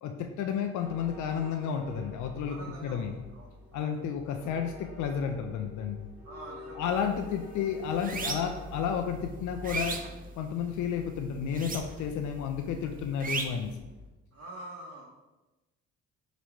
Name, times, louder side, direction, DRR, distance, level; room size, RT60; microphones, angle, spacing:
voice 1, 0.0-3.1 3.7-6.0 6.8-10.0 10.4-13.8, left 7 dB, 75° left, 5 dB, 0.5 m, -32 dB
sound 1, 0.8-14.1, left 2 dB, 5° right, 1.1 m, -47 dB
voice 2, 2.4-3.1 3.3-4.0 6.2-6.9 14.3-15.0, right 2 dB, 60° right, -5 dB, 1.1 m, -45 dB
sound 2, 6.9-7.2 7.5-8.7 9.1-10.8 11.5-12.2 12.5-13.7, right 4 dB, 30° right, 0.5 m, -36 dB
4.0 x 3.0 x 4.4 m, 1.1 s
cardioid pair, 90°, 30 cm